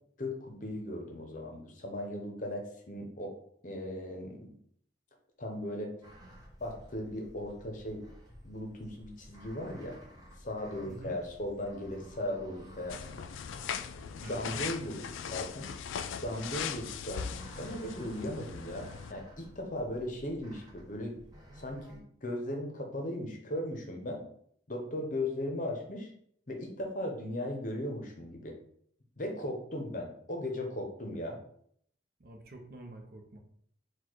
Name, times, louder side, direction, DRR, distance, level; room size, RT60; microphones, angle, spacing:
voice 1, 0.2-3.3 3.6-4.5 5.4-5.9 6.6-8.0 8.4-10.0 10.4-13.0 14.2-15.7 16.2-21.1 21.6-24.2 24.7-26.1 26.5-28.6 29.2-31.4, left 1 dB, 40° left, 2 dB, 0.8 m, -37 dB
sound 1, 6.0-22.0, equal, 20° right, 0.8 m, -54 dB
voice 2, 10.8-11.2 14.2-14.6 32.2-33.4, right 2 dB, 50° right, 3 dB, 0.6 m, -47 dB
sound 2, 12.9-19.1, left 7 dB, 80° left, 0.3 m, -39 dB
4.3 x 2.3 x 4.5 m, 0.65 s
head